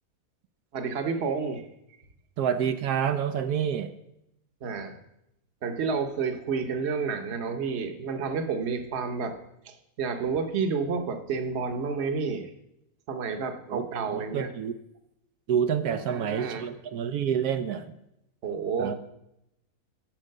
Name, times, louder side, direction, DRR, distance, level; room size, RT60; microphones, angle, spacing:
voice 1, 0.7-1.7 4.6-5.0 5.6-9.4 9.6-12.5 13.1-14.5 16.1-16.7 18.4-19.0, right 5 dB, 50° right, 6 dB, 1.1 m, -30 dB
voice 2, 2.4-3.9 13.7-14.0 14.3-14.8 15.5-17.9 18.8-19.0, right 8 dB, 85° right, 8 dB, 1.2 m, -28 dB
12.0 x 4.9 x 6.5 m, 0.82 s
omnidirectional pair, 1.6 m